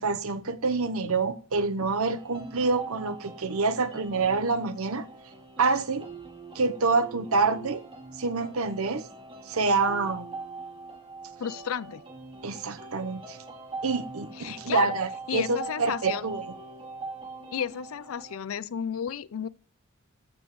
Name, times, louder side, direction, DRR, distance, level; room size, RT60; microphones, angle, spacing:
voice 1, 0.0-5.0 5.6-6.0 6.5-7.8 8.2-9.1 9.5-10.3 12.4-13.4 13.8-16.4, right 4 dB, 80° right, 0.9 m, -27 dB
sound 1, 2.1-18.4, right 3 dB, 25° right, 2.1 m, -42 dB
voice 2, 11.4-12.0 14.4-15.0 15.3-16.3 17.5-19.5, left 8 dB, 70° left, 0.4 m, -33 dB
14.5 x 7.2 x 3.1 m
head